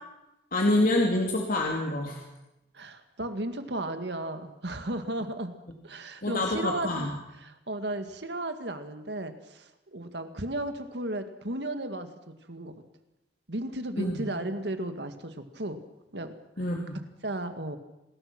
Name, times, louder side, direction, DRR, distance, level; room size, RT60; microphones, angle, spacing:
voice 1, 0.5-2.2 6.2-7.1 14.0-14.3 16.6-17.0, left 1 dB, 50° left, 0 dB, 3.0 m, -26 dB
voice 2, 2.7-5.5 5.8-7.1 7.4-12.7 13.5-15.8 16.1-16.3 17.2-17.8, right 1 dB, 65° right, 8 dB, 2.1 m, -34 dB
27.0 x 20.0 x 6.1 m, 0.93 s
head